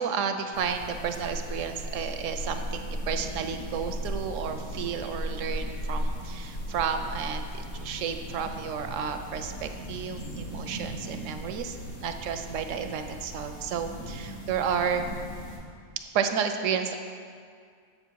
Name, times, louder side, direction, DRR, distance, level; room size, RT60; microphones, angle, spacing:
voice 1, 0.0-15.0 16.1-17.0, right 7 dB, 70° right, 7 dB, 0.8 m, -32 dB
sound 1, 0.5-15.6, equal, 50° left, 1.4 m, -37 dB
7.5 x 6.8 x 4.5 m, 2.2 s
omnidirectional pair, 1.5 m